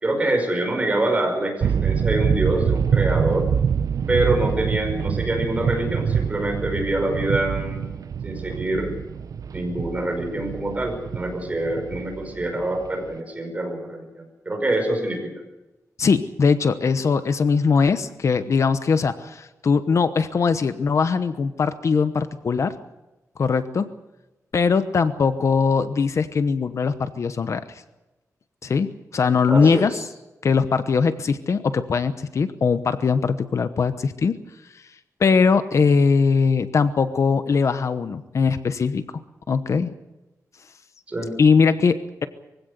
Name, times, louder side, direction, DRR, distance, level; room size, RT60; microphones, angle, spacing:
voice 1, 0.0-3.5 4.1-7.9 8.2-9.0 9.5-15.3 29.5-30.0 41.1-41.3, right 1 dB, 25° right, 3 dB, 5.5 m, -25 dB
sound 1, 1.6-13.1, right 7 dB, 85° right, 0.7 m, -25 dB
voice 2, 16.0-22.7 23.4-23.9 24.5-27.8 28.6-29.9 30.4-34.3 34.7-34.8 35.2-39.0 39.5-39.9 41.4-42.3, left 5 dB, 55° left, 11 dB, 1.0 m, -21 dB
23.0 x 16.5 x 8.2 m, 1.0 s
wide cardioid pair, 170°, 6 cm